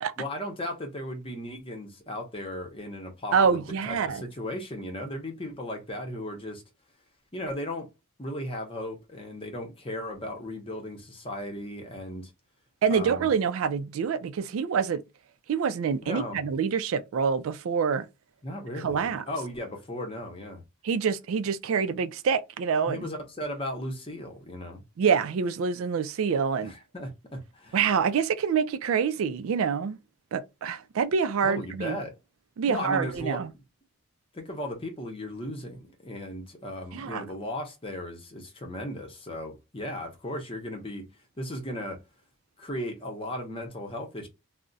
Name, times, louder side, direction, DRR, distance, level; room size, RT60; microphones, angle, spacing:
voice 1, 0.2-6.6 7.3-7.9 8.2-12.3 12.9-13.3 16.0-16.5 18.4-20.6 22.9-24.8 26.6-27.8 31.4-32.2 32.7-33.4 34.3-41.1 41.4-42.0 42.6-44.3, left 1 dB, 25° left, 0.7 m, -36 dB
voice 2, 3.3-4.2 12.8-15.0 15.5-18.1 18.8-19.2 20.8-23.1 25.0-26.7 27.7-30.0 30.3-32.0 32.6-33.5 36.9-37.2, right 6 dB, 80° right, 0.3 m, -26 dB
2.4 x 2.0 x 3.8 m
head